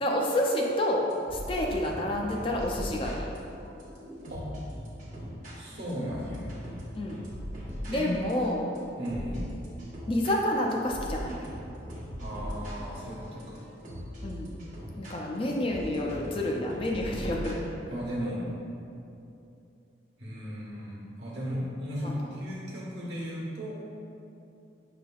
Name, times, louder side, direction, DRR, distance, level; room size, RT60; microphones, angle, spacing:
voice 1, 0.0-1.0 1.3-3.3 6.9-7.2 7.9-8.7 10.1-11.5 14.2-14.6 15.0-17.6 22.0-22.3, left 1 dB, 30° left, -1 dB, 0.3 m, -29 dB
sound 1, 1.1-17.7, equal, 45° right, 0.8 m, -40 dB
voice 2, 5.5-6.5 7.9-8.2 9.0-9.5 12.2-13.6 17.9-18.5 20.2-23.9, equal, 70° right, -6 dB, 1.1 m, -35 dB
6.1 x 3.3 x 2.3 m, 2.7 s
head